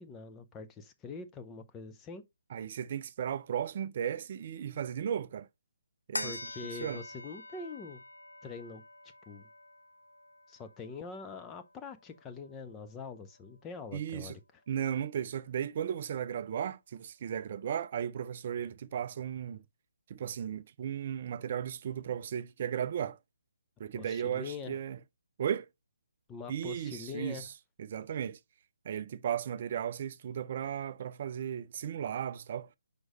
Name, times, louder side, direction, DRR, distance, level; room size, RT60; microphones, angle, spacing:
voice 1, 0.0-2.2 6.2-8.0 8.4-8.8 9.3-9.5 10.5-14.4 23.9-24.8 26.3-27.5, left 4 dB, 15° left, 0.6 m, -44 dB
voice 2, 2.5-5.5 6.1-6.4 6.8-7.0 13.9-14.4 14.7-19.6 20.1-23.2 23.8-25.0 25.4-25.7 26.5-27.5 27.8-28.4 28.9-32.7, right 9 dB, 40° right, 0.4 m, -35 dB
sound 1, 6.1-12.9 13.3-13.4, left 2 dB, 85° left, 0.6 m, -45 dB
6.2 x 5.0 x 3.1 m
figure-of-eight pair, 140°, 0 cm